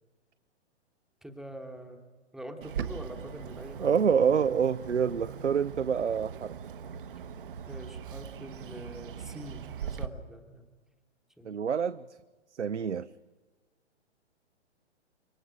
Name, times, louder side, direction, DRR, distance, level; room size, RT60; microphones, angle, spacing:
voice 1, 1.2-4.5 7.7-10.7 11.4-11.6, right 1 dB, ahead, 5 dB, 1.1 m, -45 dB
Bird, 2.6-10.1, right 8 dB, 50° right, 1.0 m, -40 dB
voice 2, 3.8-6.5 11.4-12.0 12.6-13.1, right 7 dB, 80° right, 14 dB, 0.6 m, -27 dB
26.0 x 23.5 x 4.9 m, 1.3 s
figure-of-eight pair, 120°, 34 cm